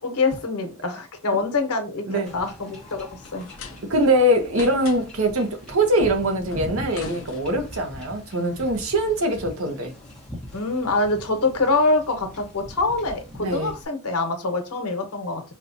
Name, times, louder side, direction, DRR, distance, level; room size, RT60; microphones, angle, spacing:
voice 1, 0.0-3.5 10.5-15.5, left 3 dB, 85° left, 1.0 m, -25 dB
Wind / Ocean / Boat Water vehicle, 2.3-13.9, left 1 dB, 5° left, 0.8 m, -41 dB
sound 1, 3.2-4.1 4.5-5.3 6.5-7.9, left 4 dB, 65° left, 0.5 m, -41 dB
voice 2, 3.9-9.9 13.4-13.7, right 1 dB, 70° right, 0.8 m, -22 dB
4.2 x 2.3 x 2.6 m
head